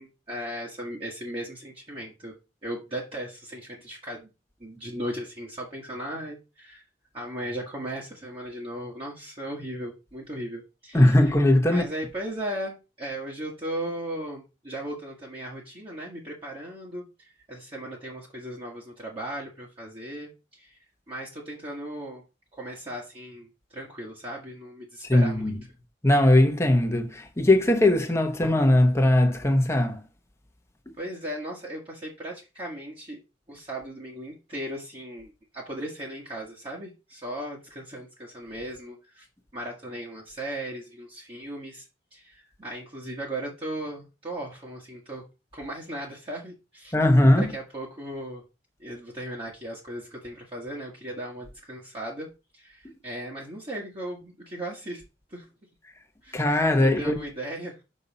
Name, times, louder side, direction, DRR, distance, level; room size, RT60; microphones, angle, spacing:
voice 1, 0.0-2.3 2.6-4.3 4.6-6.8 7.1-11.2 11.6-20.8 21.1-22.2 22.5-25.5 31.0-33.2 33.5-39.3 39.5-45.2 45.5-46.9 47.3-48.4 48.8-52.3 52.5-55.0 55.3-55.4 56.2-56.5 56.8-57.8, right 1 dB, 30° right, 1.6 m, -37 dB
voice 2, 10.9-11.8 25.1-25.5 26.0-30.0 46.9-47.4 56.3-57.2, left 1 dB, 15° left, 1.0 m, -20 dB
6.4 x 5.5 x 4.1 m
head